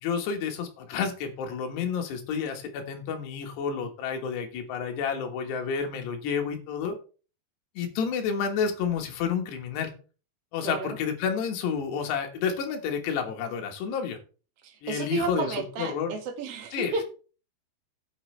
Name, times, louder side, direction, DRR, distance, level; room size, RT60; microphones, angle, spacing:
voice 1, 0.0-7.0 7.8-9.9 10.5-14.2 14.8-16.1 16.7-17.0, left 6 dB, 75° left, 4 dB, 3.5 m, -30 dB
voice 2, 10.6-11.0 14.6-17.0, right 4 dB, 50° right, 3 dB, 1.9 m, -32 dB
15.5 x 6.2 x 3.3 m, 0.36 s
omnidirectional pair, 5.1 m